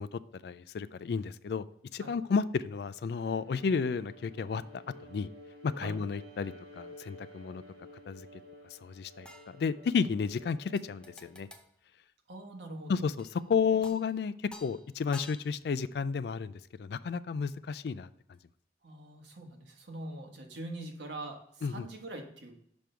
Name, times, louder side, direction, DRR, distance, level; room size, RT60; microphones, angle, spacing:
voice 1, 0.0-1.6 1.9-5.3 5.6-7.6 8.1-8.4 8.7-11.5 12.9-14.3 14.6-18.1 21.6-21.8, left 5 dB, 60° left, 16 dB, 0.3 m, -32 dB
Bowed string instrument, 3.1-11.5, left 1 dB, 60° right, 1.5 m, -52 dB
sound 1, 9.3-10.2 10.8-11.7 13.2-13.5 13.8-14.2 14.5-15.8 18.3-18.4, left 2 dB, 5° left, 0.6 m, -52 dB
voice 2, 12.3-13.0 18.8-22.6, right 1 dB, 80° right, 2 dB, 1.4 m, -43 dB
6.2 x 5.3 x 4.5 m, 0.69 s
head